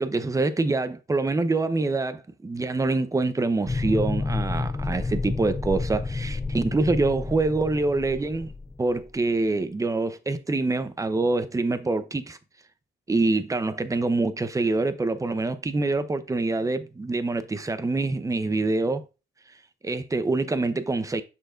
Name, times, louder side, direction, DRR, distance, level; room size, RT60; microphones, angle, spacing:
voice 1, 0.0-8.5 8.8-12.4 13.1-19.0 19.8-21.2, right 3 dB, 15° right, 0.8 m, -25 dB
sound 1, 3.7-9.1, left 3 dB, 15° left, 0.3 m, -30 dB
7.1 x 6.6 x 2.6 m
cardioid pair, 90°, 20 cm